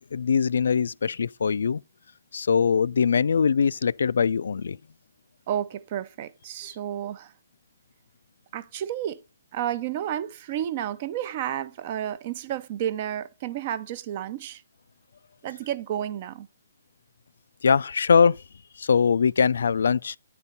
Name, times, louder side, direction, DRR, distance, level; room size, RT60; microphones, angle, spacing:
voice 1, 0.1-1.8 2.3-4.8 17.6-18.4 18.8-20.2, left 6 dB, 75° left, 0.3 m, -22 dB
voice 2, 5.5-7.3 8.5-9.2 9.5-14.6 15.4-16.5, right 11 dB, 35° right, 0.6 m, -31 dB
9.7 x 4.4 x 5.3 m
hypercardioid pair, 160°, 0 cm